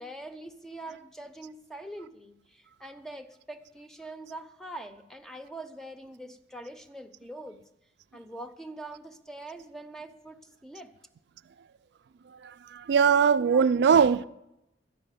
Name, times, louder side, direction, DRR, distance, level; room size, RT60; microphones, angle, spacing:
voice 1, 0.0-7.6 8.1-10.9 13.5-13.6, right 1 dB, 5° left, 0.6 m, -43 dB
voice 2, 12.7-14.2, right 6 dB, 65° right, 0.3 m, -20 dB
12.5 x 5.6 x 9.0 m
head